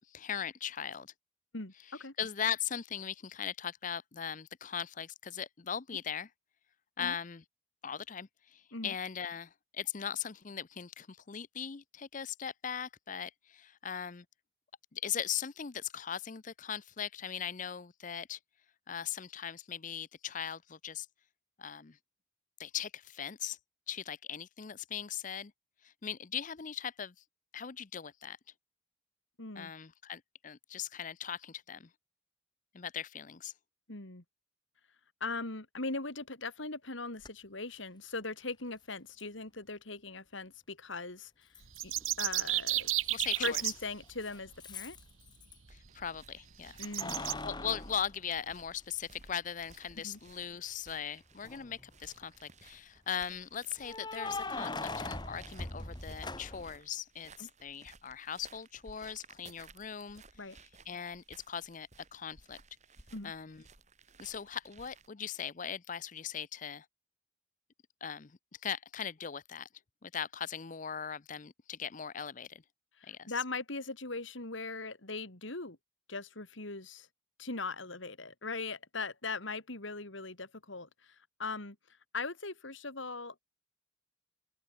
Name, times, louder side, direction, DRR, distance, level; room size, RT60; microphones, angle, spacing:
voice 1, 0.1-1.1 2.2-6.3 7.0-7.4 7.8-14.3 14.9-18.4 18.9-21.1 21.6-22.0 22.6-23.6 23.9-25.5 25.8-27.1 27.5-28.4 29.5-31.9 32.7-33.5 43.1-43.7 45.7-46.8 47.2-60.2 60.9-62.6 63.2-63.6 64.2-66.9 68.0-69.7 70.0-72.6 73.1-73.3, left 8 dB, 40° left, 0.6 m, -39 dB
voice 2, 1.5-2.1 7.0-7.1 8.7-8.9 29.4-29.7 33.9-34.2 35.2-41.5 41.8-42.9 43.4-45.0 46.8-47.2 50.0-50.2 57.4-57.5 60.4-60.6 63.1-63.3 73.0-75.8 76.1-77.1 77.4-81.8 82.1-83.5, left 3 dB, 70° left, 3.0 m, -40 dB
Keys jangling, 37.2-37.3 39.2-39.3 41.5-42.1 42.4-45.6 46.8-48.9 49.4-49.5 51.3-51.9 53.8-56.8, left 3 dB, 20° left, 2.9 m, -41 dB
sound 1, 41.6-43.7 45.5-45.6 46.0-46.1 46.8-47.3, right 15 dB, 90° right, 1.3 m, -32 dB
sound 2, 45.7-65.1, right 4 dB, 35° right, 4.8 m, -59 dB
open air
head